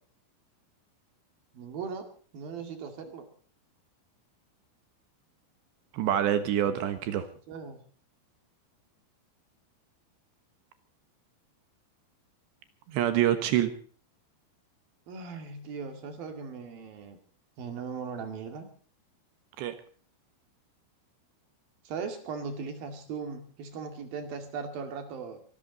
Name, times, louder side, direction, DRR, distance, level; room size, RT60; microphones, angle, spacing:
voice 1, 1.5-2.1 2.3-3.2 7.5-7.8 15.1-17.2 17.6-18.7 21.9-25.4, right 5 dB, 55° right, 7 dB, 3.6 m, -38 dB
voice 2, 5.9-7.3 12.9-13.7 19.6-19.8, right 11 dB, 70° right, 10 dB, 3.2 m, -26 dB
25.0 x 13.0 x 4.0 m, 0.42 s
omnidirectional pair, 5.6 m